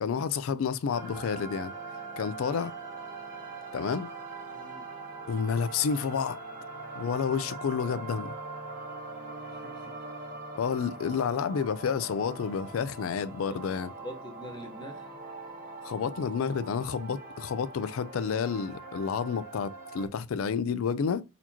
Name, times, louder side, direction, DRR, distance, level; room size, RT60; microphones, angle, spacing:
voice 1, 0.0-1.7 2.2-2.7 3.7-4.1 5.3-6.4 7.0-8.3 10.6-13.9 15.8-21.2, left 6 dB, 80° left, 0.4 m, -30 dB
sound 1, 0.9-20.1, right 3 dB, 40° right, 1.1 m, -42 dB
voice 2, 4.5-4.9 9.5-9.9 13.5-13.6 14.0-15.2, equal, 20° left, 1.0 m, -44 dB
4.1 x 2.9 x 2.7 m
head